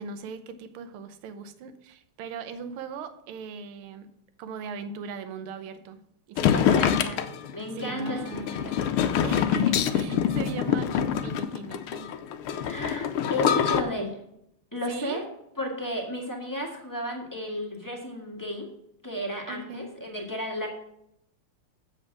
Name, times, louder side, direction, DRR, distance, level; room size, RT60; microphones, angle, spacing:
voice 1, 0.0-4.1 4.4-6.0 6.3-7.0 7.7-8.8 9.2-12.1 14.9-15.2 19.5-19.9, right 5 dB, 75° right, 1.6 m, -39 dB
sound 1, 6.4-13.8, left 8 dB, 85° left, 1.6 m, -25 dB
voice 2, 6.5-7.2 7.5-8.2 8.5-8.8 12.6-14.2 14.7-15.3 15.6-18.7 19.0-20.7, equal, 10° left, 1.3 m, -33 dB
7.8 x 7.5 x 4.7 m
omnidirectional pair, 2.4 m